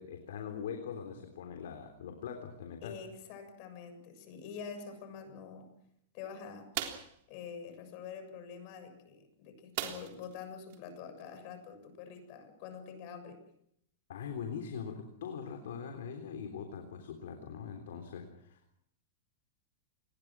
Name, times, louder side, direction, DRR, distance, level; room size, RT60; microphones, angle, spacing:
voice 1, 0.0-2.9 14.1-18.8, left 7 dB, 80° left, 5 dB, 3.6 m, -42 dB
voice 2, 2.8-5.7 6.1-6.7 7.3-13.4, left 6 dB, 45° left, 8 dB, 7.0 m, -46 dB
sound 1, 6.7-7.2 9.8-10.3 10.7-10.8 11.2-11.4, right 12 dB, 55° right, 3.5 m, -37 dB
27.5 x 21.0 x 6.2 m, 0.72 s
supercardioid pair, 145°, 0 cm